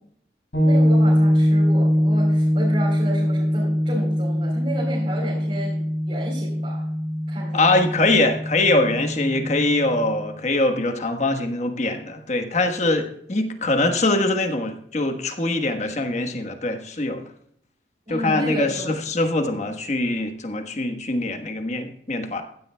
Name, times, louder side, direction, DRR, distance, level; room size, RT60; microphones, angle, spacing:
sound 1, 0.5-10.2, equal, 80° left, 5.6 m, -22 dB
voice 1, 0.6-5.8 6.1-6.8 7.3-7.9 18.0-19.0, right 1 dB, 35° right, -6 dB, 3.7 m, -32 dB
voice 2, 7.5-17.2 18.1-22.4, left 2 dB, 40° left, 6 dB, 1.3 m, -23 dB
15.5 x 12.5 x 2.2 m, 0.68 s
head